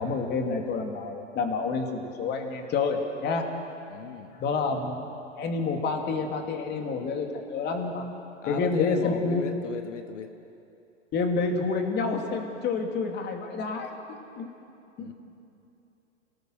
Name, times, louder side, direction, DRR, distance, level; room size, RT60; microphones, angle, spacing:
voice 1, 0.0-3.4 4.4-5.0 5.4-8.0 8.5-9.4 11.1-13.9 14.4-14.5 15.0-15.1, left 4 dB, 25° left, 3 dB, 2.7 m, -28 dB
voice 2, 3.9-4.4 8.4-10.3 15.0-15.1, left 7 dB, 80° left, 6 dB, 1.6 m, -36 dB
27.5 x 19.0 x 6.5 m, 2.7 s
hypercardioid pair, 125°, 37 cm